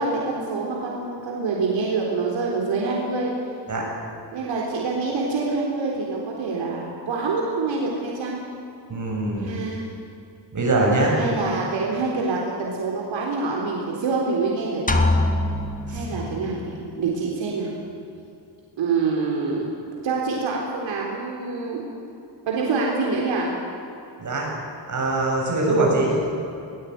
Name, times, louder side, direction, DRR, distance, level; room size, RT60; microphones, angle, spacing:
voice 1, 0.0-3.3 4.3-8.4 9.4-9.8 11.1-15.0 15.9-17.7 18.8-19.7 20.0-21.8 22.5-23.6, right 4 dB, 85° right, -2 dB, 4.0 m, -26 dB
voice 2, 8.9-9.6 10.5-11.2 15.9-16.0 24.2-24.5 24.9-26.2, right 2 dB, 40° right, -2 dB, 7.8 m, -22 dB
sound 1, 14.9-16.7, left 2 dB, 20° left, 1.8 m, -23 dB
20.0 x 19.5 x 9.5 m, 2.7 s
wide cardioid pair, 135°, 44 cm